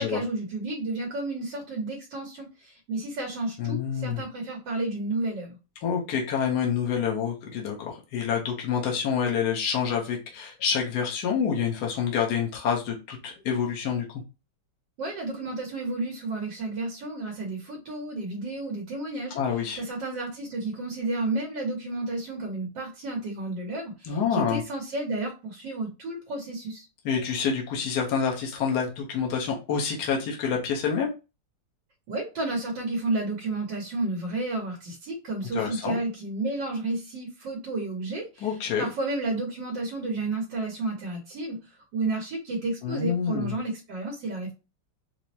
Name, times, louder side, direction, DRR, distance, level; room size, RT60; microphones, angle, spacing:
voice 1, 0.0-5.6 15.0-19.3 19.8-26.9 32.1-44.5, right 2 dB, 90° right, 0 dB, 1.6 m, -31 dB
voice 2, 3.6-4.2 5.8-14.1 19.3-19.8 24.0-24.6 27.0-31.1 35.5-36.0 38.4-38.9 42.8-43.6, left 7 dB, 65° left, 0 dB, 1.3 m, -27 dB
4.6 x 2.0 x 2.7 m, 0.29 s
omnidirectional pair, 1.9 m